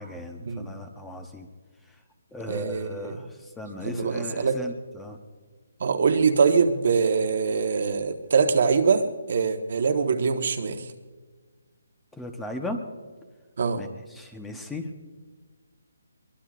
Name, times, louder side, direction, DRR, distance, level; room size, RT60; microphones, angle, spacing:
voice 1, 0.0-1.5 2.3-3.3 3.6-5.2 12.2-12.8 13.8-13.9 14.2-14.9, left 1 dB, 5° left, 5 dB, 1.0 m, -36 dB
voice 2, 2.5-3.2 3.8-4.6 5.8-10.9 13.6-13.8, right 5 dB, 55° right, 6 dB, 1.4 m, -23 dB
23.0 x 21.5 x 2.5 m, 1.4 s
hypercardioid pair, 165°, 0 cm